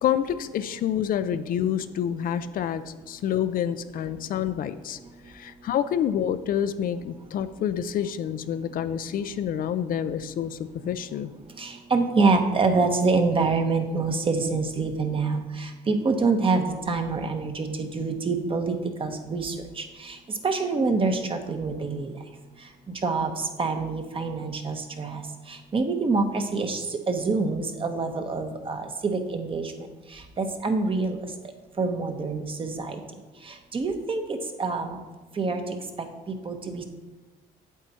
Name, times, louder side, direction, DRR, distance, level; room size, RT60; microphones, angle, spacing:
voice 1, 0.0-5.0 5.3-11.3, left 9 dB, 55° left, 11 dB, 0.5 m, -28 dB
voice 2, 11.6-22.1 23.0-25.2 25.5-29.9 30.1-31.2 31.8-33.0 33.4-35.0 35.4-35.8 36.3-36.8, right 4 dB, 30° right, 5 dB, 1.1 m, -26 dB
8.4 x 7.9 x 4.3 m, 1.2 s
cardioid pair, 110°, 17 cm